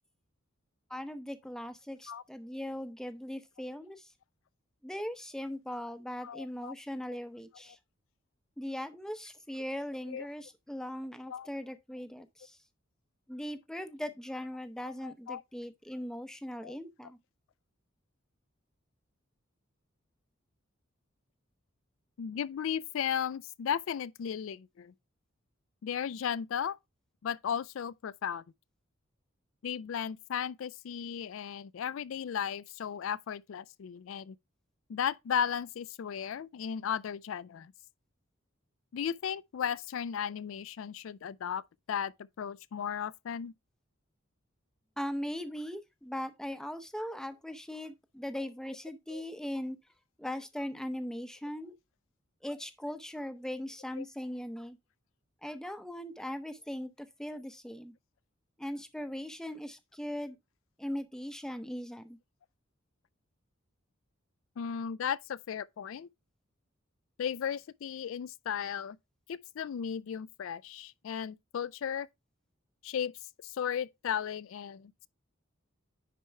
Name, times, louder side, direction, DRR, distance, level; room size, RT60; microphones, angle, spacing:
voice 1, 0.9-4.1 4.8-7.8 8.6-12.6 13.3-17.2 45.0-49.8 50.2-51.7 52.4-54.8 55.4-57.9 58.6-60.4 60.8-62.2, left 1 dB, 5° left, 0.7 m, -39 dB
voice 2, 6.2-6.7 10.1-10.3 11.3-11.5 14.9-15.4 16.6-16.8 22.2-24.9 25.8-26.8 27.2-28.4 29.6-34.4 34.9-37.7 38.9-41.6 41.9-43.5 49.1-49.2 54.0-54.1 64.6-66.1 67.2-69.0 69.3-72.1 72.8-73.1 73.4-75.1, left 8 dB, 75° left, 0.4 m, -35 dB
10.0 x 4.5 x 3.3 m
head